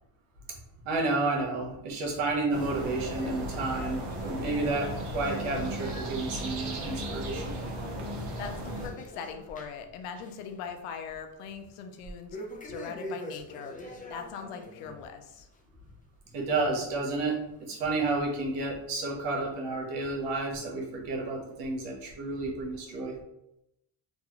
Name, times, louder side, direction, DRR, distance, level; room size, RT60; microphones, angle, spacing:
voice 1, 0.8-7.5 16.3-17.4 17.7-23.1, right 3 dB, 90° right, 0 dB, 1.0 m, -31 dB
sound 1, 2.3-9.9 10.2-10.5 10.9-11.0 12.3-15.0 15.4-15.6 16.3-16.4 17.2-17.3 18.1-18.2, left 1 dB, 15° left, 0.5 m, -44 dB
sound 2, 2.5-8.9, right 1 dB, 55° right, 0.9 m, -36 dB
voice 2, 8.4-12.4 12.6-15.5, left 6 dB, 85° left, 6 dB, 0.6 m, -41 dB
3.1 x 2.3 x 2.9 m, 0.85 s
cardioid pair, 100°, 50 cm